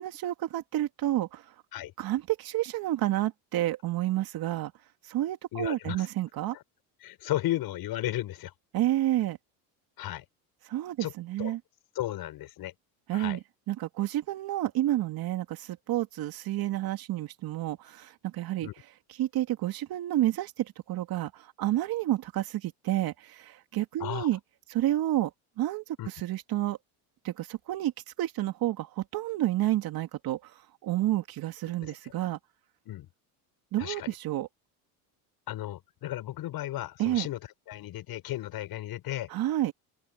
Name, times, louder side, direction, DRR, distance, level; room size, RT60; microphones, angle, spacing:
voice 1, 0.0-1.4 2.0-4.7 5.0-6.6 8.7-9.4 10.6-11.6 13.1-13.4 13.7-18.7 19.2-24.4 24.7-25.3 25.6-26.8 27.2-27.9 28.2-32.4 33.7-34.5 37.0-37.3 39.3-39.7, right 14 dB, 55° right, 2.8 m, -30 dB
voice 2, 5.5-6.1 7.0-8.5 10.0-10.2 11.0-11.1 11.4-11.5 12.0-12.7 13.1-13.4 18.6-18.7 24.0-24.3 26.0-26.1 31.8-31.9 32.9-33.1 33.8-34.1 35.5-37.4 37.7-39.3, left 14 dB, 55° left, 5.8 m, -34 dB
open air
supercardioid pair, 115°, 44 cm